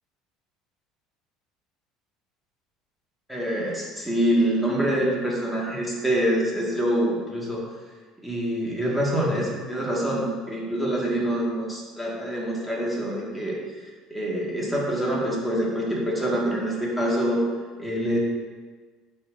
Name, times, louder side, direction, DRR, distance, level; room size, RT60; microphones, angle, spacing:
voice 1, 3.3-7.6 8.2-17.4 17.8-18.2, right 1 dB, 5° right, -5 dB, 1.7 m, -25 dB
9.6 x 4.3 x 2.6 m, 1.5 s
cardioid pair, 120°, 0 cm